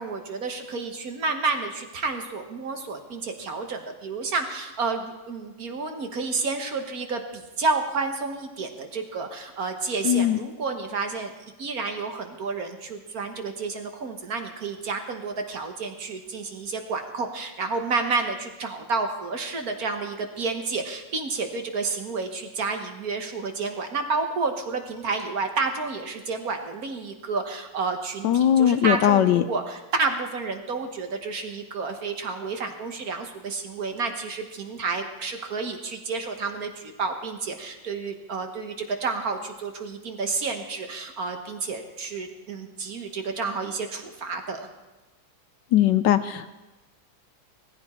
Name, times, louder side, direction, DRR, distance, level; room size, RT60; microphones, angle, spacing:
voice 1, 0.0-11.3 11.6-44.7, right 4 dB, 50° right, 5 dB, 1.5 m, -30 dB
voice 2, 10.0-10.4 28.2-29.4 45.7-46.5, left 10 dB, 70° left, 11 dB, 1.2 m, -19 dB
17.5 x 15.0 x 4.3 m, 1.1 s
omnidirectional pair, 2.1 m